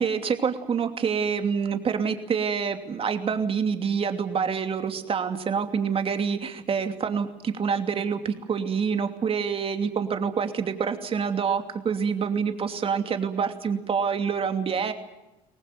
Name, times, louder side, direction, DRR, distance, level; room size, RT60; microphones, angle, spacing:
voice 1, 0.0-14.9, right 6 dB, 35° right, 6 dB, 2.8 m, -27 dB
24.0 x 18.5 x 9.5 m, 0.95 s
supercardioid pair, 95°, 16 cm